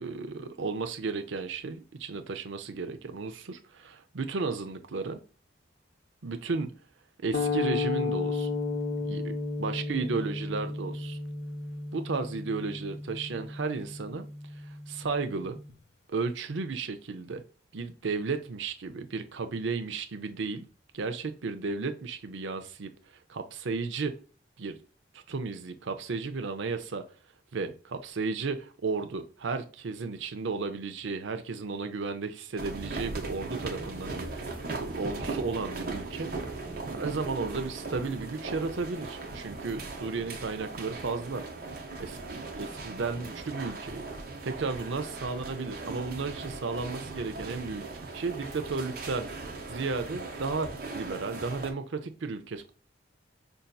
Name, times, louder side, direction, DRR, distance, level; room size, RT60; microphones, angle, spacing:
voice 1, 0.0-5.2 6.2-6.7 7.2-8.5 9.0-9.3 9.6-11.2 11.9-14.3 14.9-15.6 16.1-17.4 17.7-20.7 20.9-22.9 23.3-24.1 24.6-24.8 25.3-27.0 27.5-36.3 36.9-41.4 42.0-44.2 44.4-49.3 49.7-50.7 50.9-52.7, right 4 dB, 75° right, 0.6 m, -34 dB
sound 1, 7.3-15.7, left 3 dB, 55° left, 0.4 m, -33 dB
sound 2, 32.6-51.7, right 3 dB, 50° right, 0.9 m, -38 dB
5.6 x 2.7 x 2.3 m
head